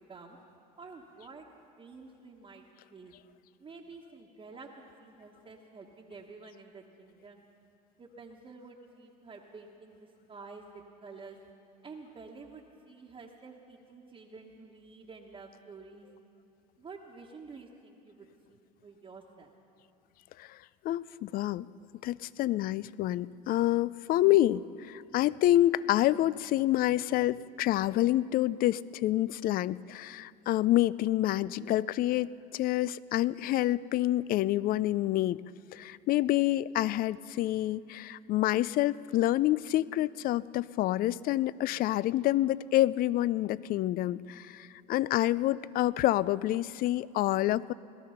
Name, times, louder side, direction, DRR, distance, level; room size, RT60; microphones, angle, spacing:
voice 1, 0.8-1.5 1.8-2.6 2.9-3.1 3.6-4.7 5.0-7.4 8.0-11.4 11.8-16.1 16.8-19.5 33.3-33.5, right 4 dB, 25° right, -1 dB, 1.3 m, -49 dB
voice 2, 20.8-21.7 22.0-35.4 35.7-47.7, left 14 dB, 45° left, 20 dB, 0.4 m, -28 dB
18.5 x 13.0 x 5.8 m, 2.6 s
supercardioid pair, 90°, 21 cm